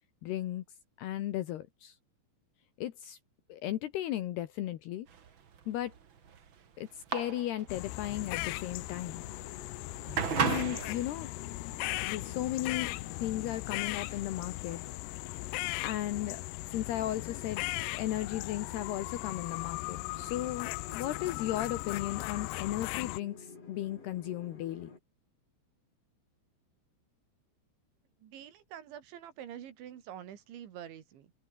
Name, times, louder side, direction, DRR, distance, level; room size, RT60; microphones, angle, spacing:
voice 1, 0.2-0.6 1.0-2.0 2.8-3.2 3.5-5.1 5.7-5.9 6.8-9.2 10.4-11.3 12.0-12.9 13.2-14.8 15.5-16.4 16.7-17.6 17.9-24.9, left 13 dB, 70° left, 3.2 m, -35 dB
sound 1, 5.1-14.9, right 7 dB, 60° right, 1.3 m, -37 dB
sound 2, 7.7-23.2, left 24 dB, 85° left, 2.3 m, -38 dB
sound 3, 8.2-25.0, left 4 dB, 35° left, 5.8 m, -53 dB
voice 2, 28.2-31.3, right 10 dB, 90° right, 4.9 m, -46 dB
open air
omnidirectional pair, 5.1 m